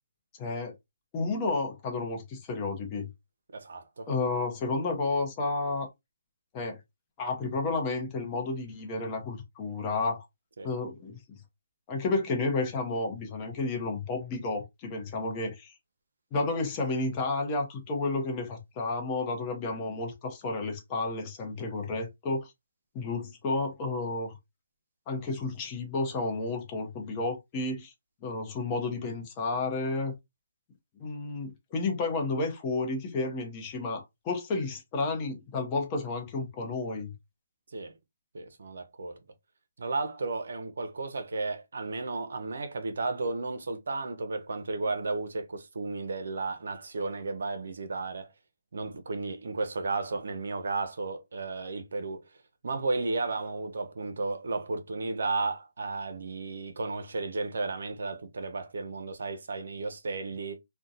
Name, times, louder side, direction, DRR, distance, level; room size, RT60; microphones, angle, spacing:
voice 1, 0.4-0.7 1.1-3.1 4.1-5.9 6.5-6.8 7.2-10.2 10.6-11.4 11.9-15.7 16.3-22.5 22.9-24.3 25.1-27.9 28.2-30.2 31.0-37.1, left 3 dB, 25° left, 0.7 m, -31 dB
voice 2, 3.5-4.1 10.6-10.7 37.7-38.0 38.3-39.2 39.8-48.3 48.7-60.6, right 3 dB, 70° right, 0.5 m, -33 dB
2.6 x 2.1 x 2.4 m
hypercardioid pair, 155°, 0 cm